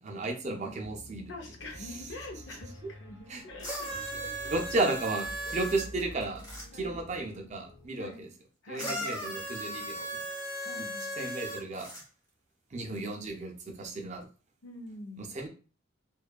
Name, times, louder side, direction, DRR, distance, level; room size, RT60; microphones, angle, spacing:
voice 1, 0.0-1.3 3.3-3.4 4.5-6.4 6.7-8.3 8.7-10.2 11.2-11.9 12.7-14.3 15.2-15.5, right 2 dB, 40° right, 3 dB, 0.5 m, -33 dB
Piano, 0.8-7.9, equal, 90° left, 0.9 m, -48 dB
voice 2, 1.3-4.5 5.5-5.6 6.7-7.1 8.0-8.3 8.6-9.2 10.6-11.1 14.6-15.3, left 2 dB, 65° left, 2 dB, 0.6 m, -45 dB
sound 1, 3.6-6.7 8.8-12.0 13.0-13.1, right 1 dB, 20° left, 0.8 m, -37 dB
2.6 x 2.3 x 2.2 m, 0.36 s
head